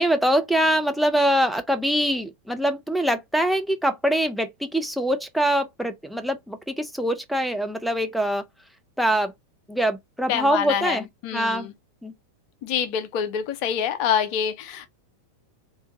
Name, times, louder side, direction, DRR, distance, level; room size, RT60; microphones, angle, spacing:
voice 1, 0.0-8.4 9.0-9.3 9.7-11.1 11.3-11.7 12.0-12.1, right 1 dB, ahead, 0.5 m, -23 dB
voice 2, 10.3-11.7 12.6-14.9, left 8 dB, 45° left, 0.7 m, -26 dB
3.3 x 2.7 x 2.7 m
figure-of-eight pair, 90°, 0 cm